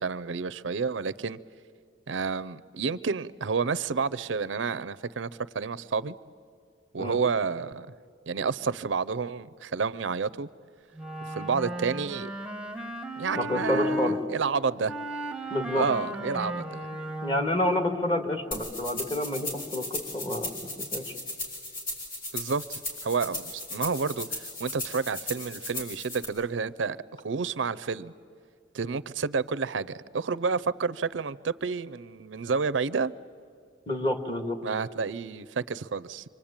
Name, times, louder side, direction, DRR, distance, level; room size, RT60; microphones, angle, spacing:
voice 1, 0.0-1.4 2.1-5.3 5.5-6.1 6.9-7.9 8.3-10.5 11.3-12.3 13.2-14.9 15.7-16.8 22.3-27.0 27.2-28.1 28.7-33.1 34.6-36.2, right 5 dB, 75° right, 16 dB, 0.6 m, -30 dB
Wind instrument woodwind instrument, 11.0-14.2 14.9-17.6, equal, 5° right, 1.0 m, -34 dB
voice 2, 13.4-14.2 15.5-15.9 17.2-20.5 20.9-21.1 33.9-34.6, left 1 dB, 25° left, 5 dB, 2.0 m, -28 dB
sound 1, 18.5-26.2, left 1 dB, 50° left, 5.9 m, -36 dB
26.0 x 25.0 x 8.8 m, 2.3 s
head